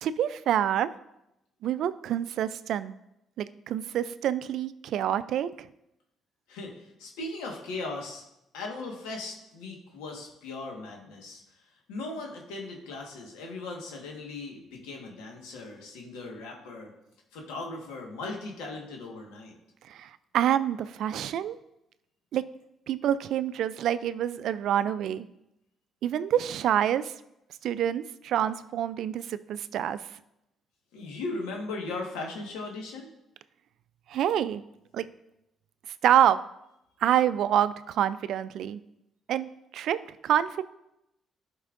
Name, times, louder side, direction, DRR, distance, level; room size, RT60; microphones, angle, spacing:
voice 1, 0.0-0.9 1.6-2.9 3.4-5.7 19.9-21.6 22.3-22.4 22.9-25.3 26.0-27.1 27.6-30.0 34.1-34.6 34.9-35.1 36.0-36.4 37.0-38.8 39.3-39.5 39.7-40.0 40.2-40.6, right 10 dB, 70° right, 15 dB, 0.3 m, -27 dB
voice 2, 6.5-8.2 8.5-16.9 17.3-19.6 30.9-33.1, left 3 dB, 85° left, 1 dB, 1.4 m, -38 dB
11.5 x 5.3 x 2.5 m, 0.86 s
supercardioid pair, 65°, 0 cm